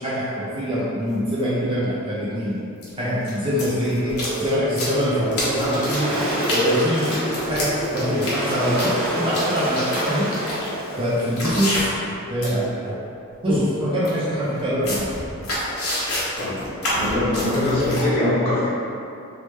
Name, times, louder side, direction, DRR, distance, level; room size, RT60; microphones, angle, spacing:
voice 1, 0.0-2.6 3.0-6.1 6.5-10.3 11.0-11.9 12.3-13.0 13.4-15.1, equal, 25° right, -9 dB, 0.3 m, -24 dB
sound 1, 0.8-0.9 2.8-2.9 3.2-12.1 12.4-12.7 13.0-13.1 13.4-13.6 14.0-14.1 14.5-18.0, left 1 dB, 90° left, 0.9 m, -28 dB
sound 2, 4.0-11.0, equal, 60° left, 0.5 m, -30 dB
Waves surf, 5.0-11.8, right 1 dB, 65° right, 0.6 m, -30 dB
voice 2, 16.9-18.7, left 1 dB, 25° left, -11 dB, 0.9 m, -22 dB
3.1 x 2.0 x 3.1 m, 2.6 s
head